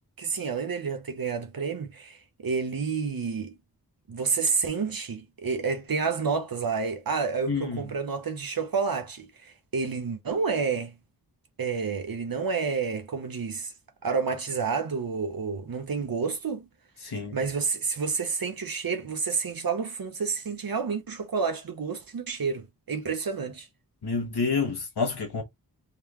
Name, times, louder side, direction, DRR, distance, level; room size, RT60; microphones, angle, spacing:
voice 1, 0.2-3.5 4.1-10.9 11.6-13.7 14.0-16.6 17.3-23.7, right 5 dB, 65° right, 0.9 m, -29 dB
voice 2, 7.5-7.8 17.0-17.4 24.0-25.4, left 4 dB, 85° left, 1.5 m, -28 dB
3.7 x 3.1 x 3.1 m
wide cardioid pair, 60°, 38 cm